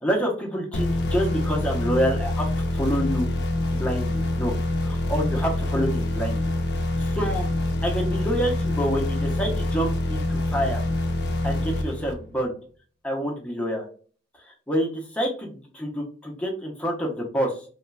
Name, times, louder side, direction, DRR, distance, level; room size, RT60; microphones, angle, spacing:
voice 1, 0.0-2.5 2.7-3.3 3.7-4.5 4.8-6.4 7.0-7.5 7.8-10.8 11.4-12.5 13.0-13.9 14.5-17.6, equal, 5° left, -1 dB, 0.6 m, -27 dB
sound 1, 0.7-12.4, left 2 dB, 60° left, 0.4 m, -26 dB
3.0 x 2.2 x 2.2 m, 0.42 s
head